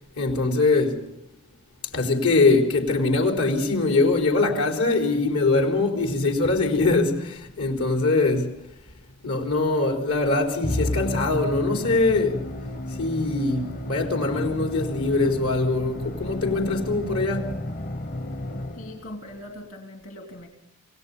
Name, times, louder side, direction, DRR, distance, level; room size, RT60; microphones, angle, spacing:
voice 1, 0.2-1.0 1.9-8.5 9.2-12.4 12.9-17.5, left 3 dB, 85° left, 4.0 m, -22 dB
Musical instrument, 10.6-19.1, left 1 dB, 35° left, 0.9 m, -32 dB
voice 2, 18.7-20.5, left 1 dB, 60° left, 3.1 m, -40 dB
27.5 x 18.0 x 5.5 m
head